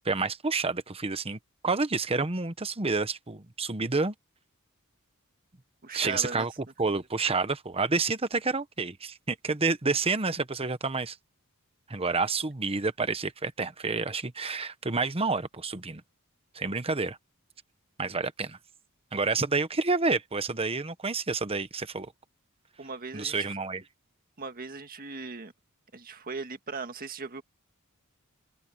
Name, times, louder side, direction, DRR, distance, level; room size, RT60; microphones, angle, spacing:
voice 1, 0.0-4.1 5.9-6.5 6.8-11.2 11.9-16.0 16.5-17.2 18.0-18.6 19.1-22.1 23.1-23.8, right 4 dB, 25° right, 1.1 m, -29 dB
voice 2, 5.8-6.5 22.8-23.6 24.4-25.5 25.9-27.4, right 4 dB, 40° right, 1.8 m, -38 dB
head